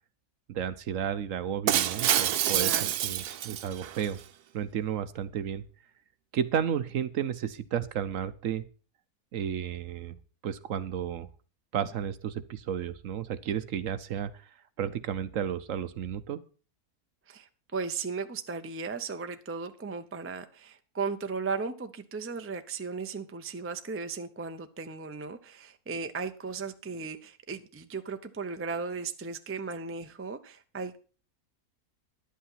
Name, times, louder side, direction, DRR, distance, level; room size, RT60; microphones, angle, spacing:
voice 1, 0.5-2.8 3.0-4.2 4.5-5.6 6.3-8.7 9.3-10.2 10.4-11.3 11.7-14.3 14.8-16.4, right 9 dB, 65° right, 1.0 m, -32 dB
Shatter, 1.7-4.1, right 11 dB, 85° right, 1.2 m, -27 dB
voice 2, 2.5-2.9 17.3-31.0, right 4 dB, 15° right, 0.4 m, -36 dB
11.0 x 8.4 x 5.7 m
omnidirectional pair, 1.6 m